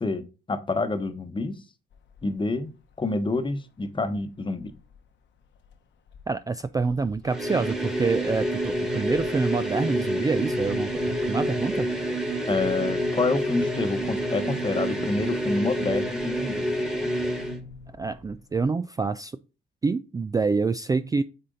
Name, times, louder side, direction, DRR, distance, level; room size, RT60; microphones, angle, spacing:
voice 1, 0.0-1.6 2.2-2.7 3.0-4.7 12.5-16.7 17.0-17.1, left 3 dB, 25° left, 9 dB, 1.0 m, -28 dB
sound 1, 1.9-2.5 2.9-3.5 4.1-5.0 5.4-5.8 6.1-18.6, left 5 dB, 65° left, 1.0 m, -44 dB
voice 2, 6.3-11.9 18.0-19.4 19.8-21.2, right 4 dB, 20° right, 12 dB, 0.3 m, -27 dB
sound 2, 7.2-17.6, equal, 5° right, 1.5 m, -28 dB
8.7 x 4.2 x 3.8 m, 0.32 s
cardioid pair, 90°, 20 cm